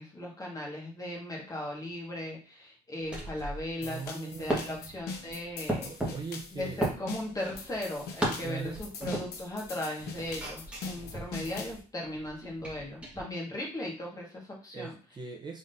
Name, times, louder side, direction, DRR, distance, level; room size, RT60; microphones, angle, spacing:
voice 1, 0.0-6.1 6.5-14.9, left 1 dB, 20° left, -2 dB, 1.6 m, -37 dB
sound 1, 3.0-9.7 10.0-13.2, right 1 dB, 5° right, 1.5 m, -37 dB
sound 2, 3.8-11.8, left 4 dB, 70° left, 0.9 m, -43 dB
voice 2, 3.8-4.9 5.8-6.8 8.4-8.8 14.7-15.6, right 5 dB, 25° right, 1 dB, 0.7 m, -41 dB
3.8 x 3.7 x 2.6 m, 0.37 s
cardioid pair, 110°, 17 cm